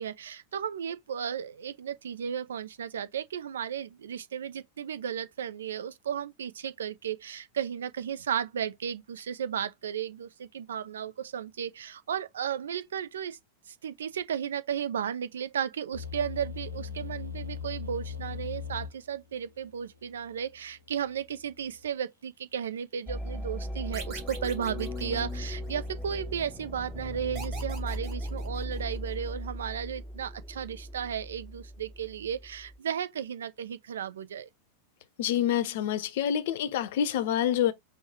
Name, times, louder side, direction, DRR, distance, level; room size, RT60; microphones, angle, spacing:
voice 1, 0.0-13.4 13.7-34.5, right 8 dB, 65° right, 0.5 m, -34 dB
sound 1, 15.9-21.8, left 7 dB, 85° right, 1.2 m, -41 dB
sound 2, 23.1-32.8, equal, 5° left, 0.6 m, -37 dB
sound 3, 23.9-25.9 27.3-29.1, right 5 dB, 30° right, 2.0 m, -44 dB
voice 2, 35.2-37.7, left 10 dB, 55° left, 0.6 m, -27 dB
5.3 x 2.2 x 4.2 m
figure-of-eight pair, 90°, 0 cm